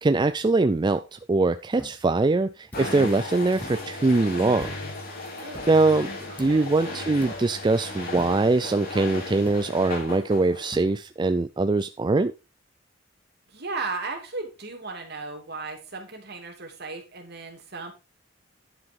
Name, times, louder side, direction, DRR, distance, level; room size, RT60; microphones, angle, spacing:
voice 1, 0.0-4.7 5.7-6.1 6.4-12.3, right 3 dB, 25° right, 0.4 m, -22 dB
sound 1, 1.8-2.0 2.7-3.0 3.6-3.9 4.6-5.0 5.5-5.8 6.4-6.7 7.2-7.5 8.2-8.5 9.5-9.8 10.7-11.0, equal, 10° left, 1.3 m, -43 dB
sound 2, 2.7-10.9, left 2 dB, 50° left, 3.2 m, -36 dB
voice 2, 5.4-5.8 6.3-6.7 13.5-17.9, right 3 dB, 60° right, 3.0 m, -36 dB
11.0 x 5.8 x 4.6 m
head